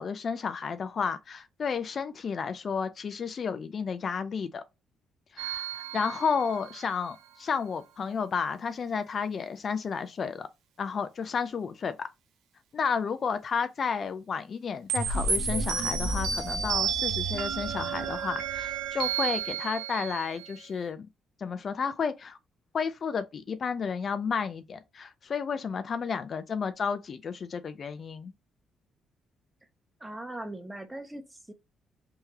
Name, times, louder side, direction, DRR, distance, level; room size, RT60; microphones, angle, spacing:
voice 1, 0.0-4.6 5.3-10.5 10.8-12.1 12.7-21.1 21.4-22.4 22.7-28.3, left 6 dB, 50° left, 0.4 m, -32 dB
sound 1, 5.4-6.9 14.9-20.6, right 6 dB, 90° right, 0.8 m, -31 dB
voice 2, 30.0-31.5, right 1 dB, 10° right, 0.9 m, -40 dB
3.5 x 3.1 x 2.9 m
cardioid pair, 90°, 0 cm